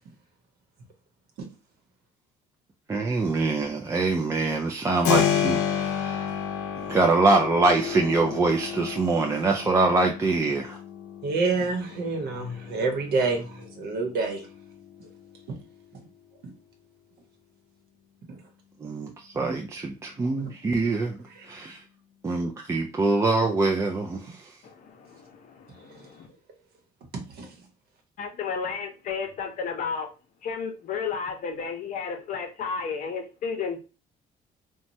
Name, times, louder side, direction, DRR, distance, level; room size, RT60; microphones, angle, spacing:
voice 1, 2.9-6.3 6.9-10.8 18.8-21.2 21.5-21.8 22.2-24.4, right 3 dB, 15° right, 1 dB, 0.3 m, -24 dB
Keyboard (musical), 5.0-15.7, left 9 dB, 90° left, 0.5 m, -31 dB
voice 2, 11.2-14.5 15.0-15.1 15.5-15.6 15.9-16.0 20.7-20.8 21.3-21.5 25.9-26.1 27.1-27.6, right 4 dB, 65° right, 3 dB, 0.9 m, -28 dB
voice 3, 12.2-12.8 24.6-26.3 28.2-30.1 30.4-33.8, left 5 dB, 50° left, 4 dB, 0.7 m, -33 dB
3.0 x 2.2 x 2.6 m, 0.31 s
cardioid pair, 110°, 17 cm